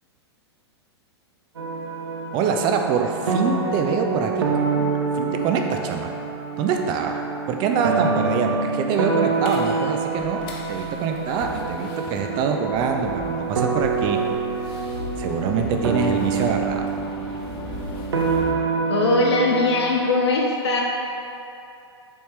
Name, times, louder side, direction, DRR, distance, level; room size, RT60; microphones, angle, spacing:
sound 1, 1.5-20.0, right 4 dB, 75° right, 0.7 m, -26 dB
voice 1, 2.3-4.5 4.7-6.1 6.6-10.4 10.7-14.2 15.2-16.9, right 6 dB, 35° right, 4 dB, 0.5 m, -25 dB
sound 2, 9.4-18.5, left 2 dB, 35° left, 0.9 m, -37 dB
voice 2, 18.9-20.8, left 3 dB, 75° left, -1 dB, 0.6 m, -20 dB
6.8 x 4.2 x 3.3 m, 2.7 s
figure-of-eight pair, 105°, 14 cm